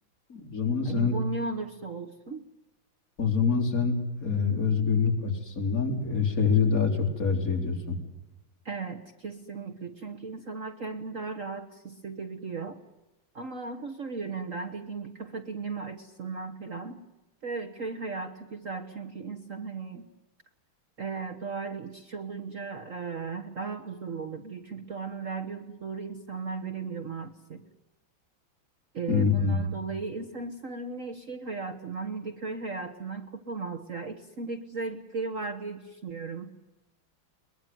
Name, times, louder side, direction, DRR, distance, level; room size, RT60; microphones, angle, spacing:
voice 1, 0.3-1.2 3.2-3.9 4.2-8.0 29.1-29.6, left 5 dB, 45° left, 3 dB, 4.2 m, -25 dB
voice 2, 0.8-2.4 8.6-12.8 13.3-17.0 17.4-20.0 21.0-27.6 28.9-36.5, right 4 dB, 45° right, 7 dB, 1.5 m, -36 dB
22.0 x 22.0 x 9.3 m, 1.0 s
omnidirectional pair, 2.2 m